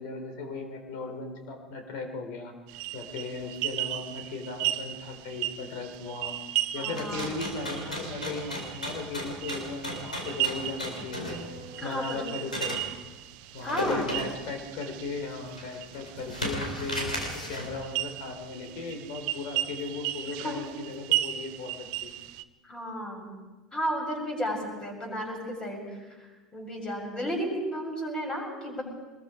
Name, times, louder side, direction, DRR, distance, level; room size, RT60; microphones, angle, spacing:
voice 1, 0.0-2.5 2.9-6.3 6.7-11.4 11.8-12.9 13.5-22.1, left 3 dB, 55° left, 5 dB, 4.0 m, -37 dB
sound 1, 2.7-22.4, right 14 dB, 55° right, 1.0 m, -36 dB
voice 2, 6.7-7.5 11.8-12.2 13.6-14.1 20.4-20.5 22.6-23.3 23.7-25.8 26.5-28.8, equal, 20° left, 1 dB, 7.1 m, -33 dB
sound 2, 7.0-12.8 13.6-14.5 15.0-15.1 15.5-17.8, equal, 90° left, 4.6 m, -35 dB
24.0 x 21.0 x 5.1 m, 1.2 s
figure-of-eight pair, 75°, 4 cm